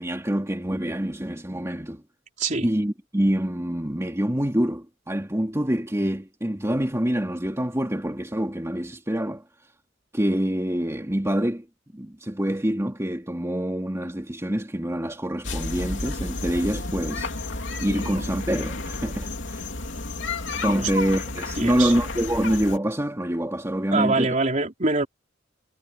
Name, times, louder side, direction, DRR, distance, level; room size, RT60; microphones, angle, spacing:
voice 1, 0.0-2.0 2.6-9.4 10.1-11.7 11.9-19.6 20.6-24.3, right 1 dB, 15° right, 2.6 m, -26 dB
sound 1, 15.4-22.8, left 2 dB, 70° left, 3.3 m, -31 dB
voice 2, 21.6-21.9 23.9-25.1, right 3 dB, 40° right, 3.5 m, -24 dB
head